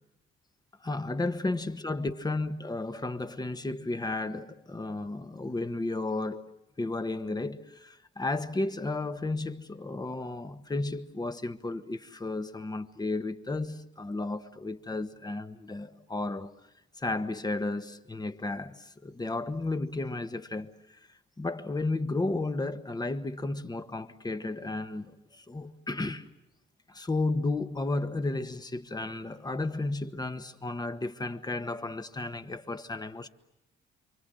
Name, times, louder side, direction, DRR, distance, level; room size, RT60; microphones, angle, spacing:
voice 1, 0.8-6.5 6.8-16.5 16.9-21.1 21.4-26.3 26.9-33.3, left 2 dB, 20° left, 1.5 m, -33 dB
29.0 x 24.5 x 7.8 m
cardioid pair, 90°, 20 cm